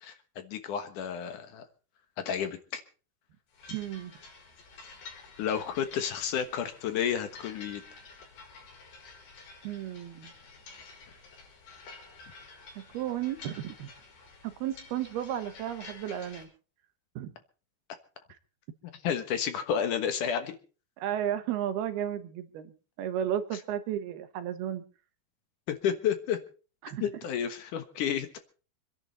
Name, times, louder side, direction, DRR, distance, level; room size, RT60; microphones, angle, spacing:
voice 1, 0.0-1.7 2.2-2.8 5.4-7.8 19.0-20.6 25.7-26.4 27.0-28.4, left 8 dB, 65° left, 9 dB, 2.6 m, -31 dB
sound 1, 3.5-16.4, left 4 dB, 90° left, 6.2 m, -50 dB
voice 2, 3.7-4.1 9.6-10.3 12.8-13.9 14.4-16.5 17.2-17.3 21.0-22.7 23.0-24.8 26.8-27.0, right 10 dB, 90° right, 10 dB, 3.3 m, -33 dB
26.0 x 11.0 x 4.1 m, 0.37 s
omnidirectional pair, 4.3 m